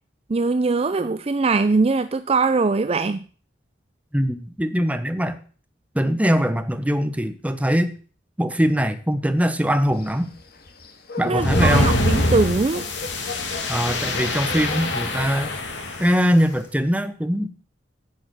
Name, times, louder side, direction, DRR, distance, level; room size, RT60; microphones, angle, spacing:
voice 1, 0.3-3.2 11.2-12.9, right 3 dB, 35° right, 0.4 m, -21 dB
voice 2, 4.1-5.4 5.9-7.9 8.4-10.3 11.2-11.9 13.7-15.6 16.0-17.5, equal, 10° right, 1.0 m, -22 dB
sound 1, 9.9-15.6, left 3 dB, 55° left, 1.9 m, -37 dB
sound 2, 11.4-16.3, left 1 dB, 75° left, 2.5 m, -24 dB
10.5 x 7.8 x 6.1 m
head